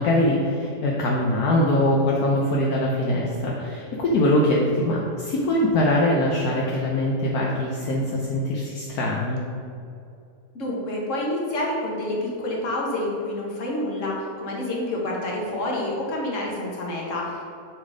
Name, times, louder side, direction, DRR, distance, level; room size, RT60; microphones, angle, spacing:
voice 1, 0.0-9.4, left 1 dB, 70° left, -3 dB, 1.3 m, -22 dB
voice 2, 10.6-17.4, left 1 dB, 50° left, -3 dB, 1.7 m, -28 dB
8.7 x 4.1 x 4.9 m, 2.5 s
omnidirectional pair, 1.7 m